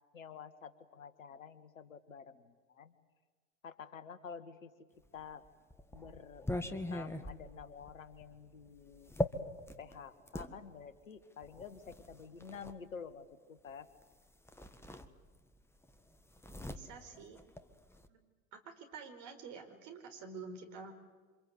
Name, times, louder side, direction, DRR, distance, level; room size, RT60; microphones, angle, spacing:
voice 1, 0.1-2.9 3.6-4.7 5.1-5.5 5.9-9.1 9.8-13.9, left 6 dB, 75° left, 13 dB, 1.7 m, -50 dB
sound 1, 5.2-10.5 11.4-12.8 14.0-14.1 14.5-15.6 15.8-18.1, left 1 dB, 5° left, 1.7 m, -41 dB
voice 2, 16.7-17.4 18.1-18.2 18.5-20.9, right 4 dB, 45° right, 5 dB, 4.8 m, -48 dB
28.0 x 26.0 x 8.2 m, 1.4 s
figure-of-eight pair, 75°, 40 cm